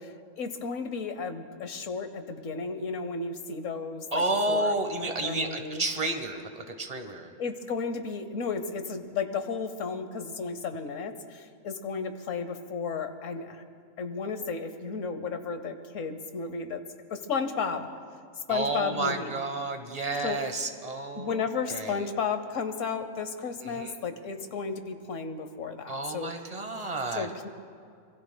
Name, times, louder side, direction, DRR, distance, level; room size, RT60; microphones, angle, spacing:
voice 1, 0.0-4.7 5.2-5.8 7.4-13.6 14.0-16.8 17.1-17.9 18.5-19.4 20.2-20.4 21.1-26.3 27.1-27.5, left 5 dB, 75° left, 9 dB, 1.3 m, -33 dB
voice 2, 4.1-7.3 18.5-22.0 23.6-24.0 25.9-27.3, right 2 dB, 30° right, 5 dB, 1.3 m, -31 dB
26.5 x 22.5 x 2.3 m, 2.3 s
omnidirectional pair, 1.3 m